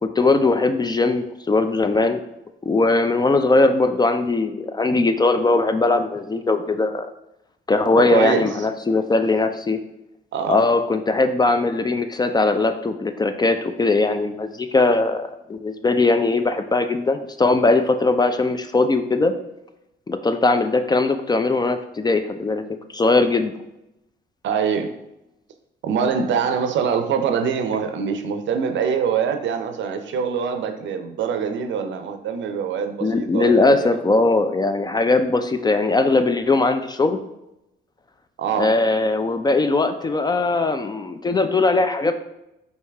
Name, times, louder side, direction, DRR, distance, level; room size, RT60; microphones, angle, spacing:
voice 1, 0.0-2.2 2.6-7.1 7.7-9.8 10.5-19.3 20.1-22.6 22.9-23.5 33.0-37.2 38.5-42.1, left 3 dB, 20° left, 8 dB, 0.3 m, -20 dB
voice 2, 7.9-8.5 10.3-10.6 24.4-25.0 25.8-33.9 38.4-38.7, right 6 dB, 70° right, 7 dB, 0.6 m, -24 dB
4.7 x 2.7 x 3.3 m, 0.88 s
cardioid pair, 90°, 20 cm